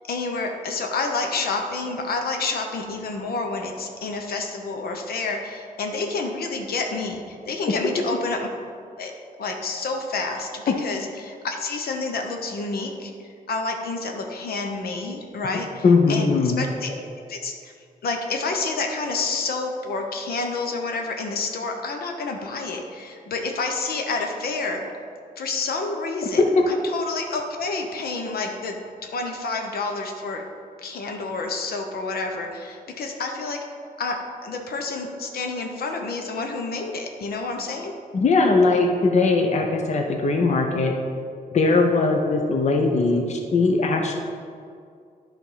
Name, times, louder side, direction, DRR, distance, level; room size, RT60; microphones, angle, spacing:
voice 1, 0.1-8.5 9.0-9.1 9.4-13.1 13.5-17.0 17.3-17.7 18.0-24.8 25.4-28.7 29.0-30.4 30.8-33.6 34.0-37.9, left 3 dB, 80° left, 3 dB, 0.9 m, -29 dB
voice 2, 15.8-16.6 38.1-40.9 41.5-44.1, left 3 dB, 45° left, 2 dB, 0.7 m, -20 dB
10.5 x 3.6 x 5.6 m, 2.3 s
wide cardioid pair, 120°, 16 cm